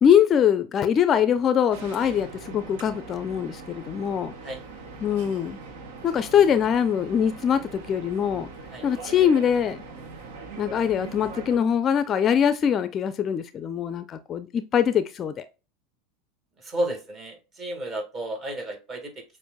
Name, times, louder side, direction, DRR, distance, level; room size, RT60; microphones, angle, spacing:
voice 1, 0.0-4.3 5.0-5.6 6.0-8.5 8.8-9.8 10.6-15.4, left 8 dB, 35° left, 0.4 m, -23 dB
sound 1, 1.7-11.6, right 4 dB, 70° right, 1.0 m, -41 dB
voice 2, 16.6-19.2, right 1 dB, 35° right, 1.9 m, -32 dB
6.8 x 2.5 x 2.2 m
hypercardioid pair, 95°, 0 cm